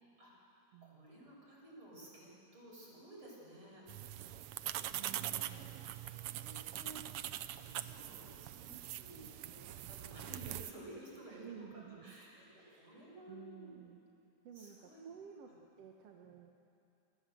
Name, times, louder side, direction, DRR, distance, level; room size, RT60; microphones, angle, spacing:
voice 1, 0.2-4.2 4.7-5.6 6.2-13.8 14.5-15.0 15.5-15.6 16.1-16.3, right 1 dB, 40° right, -4 dB, 8.1 m, -55 dB
voice 2, 0.7-1.1 4.9-5.8 8.0-8.3 9.2-9.3 11.3-12.1 12.6-13.0 13.3-14.0 14.4-15.5 15.8-16.5, right 8 dB, 60° right, 1 dB, 2.2 m, -54 dB
sound 1, 3.9-10.7, right 13 dB, 85° right, 1.2 m, -43 dB
29.5 x 22.5 x 7.8 m, 2.7 s
omnidirectional pair, 3.5 m